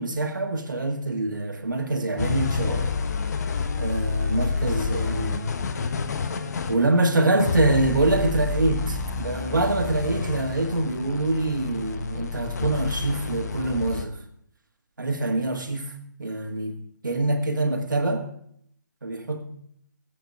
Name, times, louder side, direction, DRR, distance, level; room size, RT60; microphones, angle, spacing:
voice 1, 0.0-2.9 3.8-5.5 6.7-14.2 15.0-15.9 16.2-16.8 17.0-18.3 19.0-19.4, right 2 dB, 90° right, 3 dB, 1.9 m, -25 dB
sound 1, 2.2-14.1, left 4 dB, 60° left, 1.1 m, -29 dB
17.5 x 8.2 x 3.6 m, 0.69 s
figure-of-eight pair, 140°, 10 cm